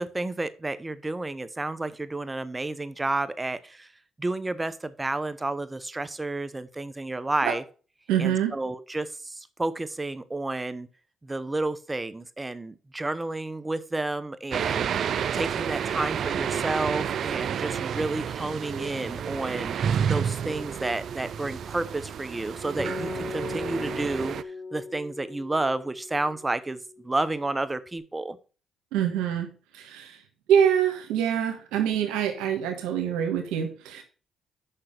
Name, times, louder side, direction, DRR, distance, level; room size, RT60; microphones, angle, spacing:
voice 1, 0.0-3.9 4.2-7.6 8.2-10.9 11.2-24.3 24.7-28.4, right 2 dB, 20° right, 1.0 m, -31 dB
voice 2, 8.1-8.5 28.9-29.5 29.7-30.2 30.5-34.0, right 9 dB, 90° right, 1.5 m, -25 dB
sound 1, 14.5-24.4, right 8 dB, 65° right, 0.5 m, -30 dB
Acoustic guitar, 22.8-26.5, left 3 dB, 40° left, 4.7 m, -37 dB
6.7 x 5.7 x 6.7 m
supercardioid pair, 60°, 0 cm